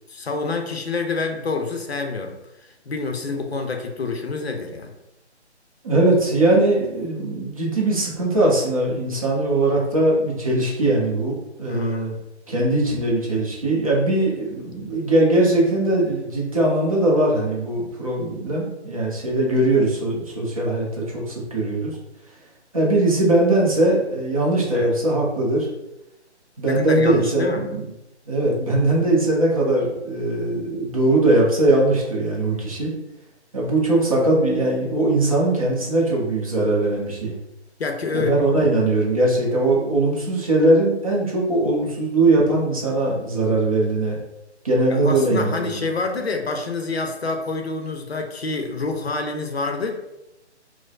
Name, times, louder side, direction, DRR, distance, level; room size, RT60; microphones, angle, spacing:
voice 1, 0.1-2.3 2.6-4.9 11.7-12.0 24.7-24.9 26.7-27.6 37.8-38.4 44.9-49.9, left 3 dB, 65° left, 4 dB, 0.6 m, -27 dB
voice 2, 5.8-12.1 12.5-22.0 22.7-25.7 26.6-27.8 28.3-32.9 33.5-37.4 38.1-44.2 44.6-45.7, right 2 dB, 30° right, -3 dB, 0.7 m, -20 dB
4.6 x 2.0 x 2.3 m, 0.92 s
figure-of-eight pair, 145°, 35 cm